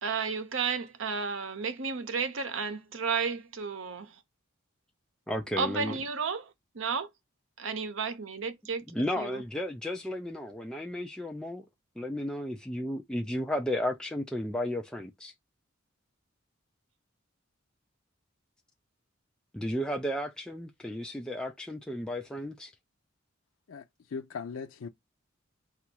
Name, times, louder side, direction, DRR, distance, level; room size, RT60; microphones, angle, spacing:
voice 1, 0.0-4.1 5.6-7.1 7.6-8.8 9.2-9.4, right 5 dB, 75° right, 0.7 m, -32 dB
voice 2, 5.3-6.0 8.9-11.7 12.0-15.3 19.5-22.7, left 1 dB, 5° left, 0.4 m, -33 dB
voice 3, 23.7-24.9, left 5 dB, 90° left, 0.4 m, -39 dB
3.9 x 2.4 x 4.4 m
head